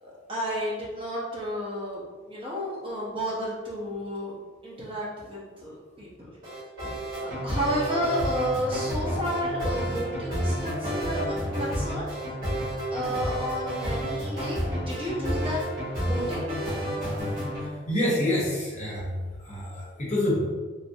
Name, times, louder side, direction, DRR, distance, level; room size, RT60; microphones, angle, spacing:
voice 1, 0.0-4.3 4.6-6.3 7.1-12.1 12.9-15.6 16.0-16.5, equal, 25° right, -6 dB, 0.8 m, -31 dB
sound 1, 6.4-17.7, equal, 45° right, 1.3 m, -30 dB
voice 2, 17.6-20.5, left 1 dB, 35° left, -6 dB, 0.9 m, -27 dB
3.2 x 2.5 x 2.7 m, 1.4 s
head